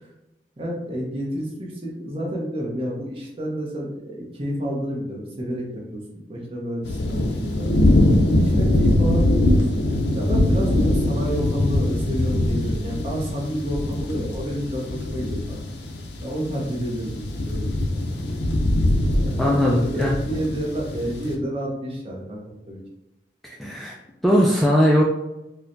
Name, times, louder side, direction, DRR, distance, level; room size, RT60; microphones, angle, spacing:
voice 1, 0.6-7.7 8.3-15.8 16.2-18.3 19.2-22.8, equal, 30° right, -3 dB, 0.8 m, -30 dB
sound 1, 6.8-21.3, left 1 dB, 80° left, 0.6 m, -22 dB
voice 2, 19.4-20.2 23.4-23.9 24.2-25.0, equal, ahead, -3 dB, 0.3 m, -19 dB
4.5 x 2.2 x 2.6 m, 0.91 s
head